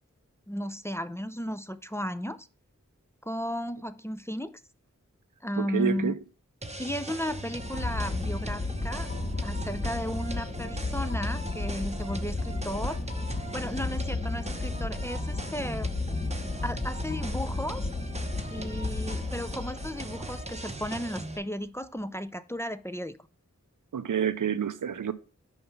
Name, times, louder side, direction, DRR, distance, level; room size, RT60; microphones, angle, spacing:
voice 1, 0.5-2.5 3.2-4.6 5.4-6.1 6.8-9.1 9.4-13.0 13.5-15.9 16.6-17.9 18.5-23.2, equal, 10° left, 0.4 m, -34 dB
voice 2, 5.6-6.1 23.9-25.1, right 8 dB, 90° right, 0.5 m, -28 dB
sound 1, 6.6-21.4, right 2 dB, 20° right, 0.8 m, -40 dB
sound 2, 7.2-21.4, left 3 dB, 25° left, 0.8 m, -33 dB
5.6 x 4.3 x 5.7 m
wide cardioid pair, 45°, 31 cm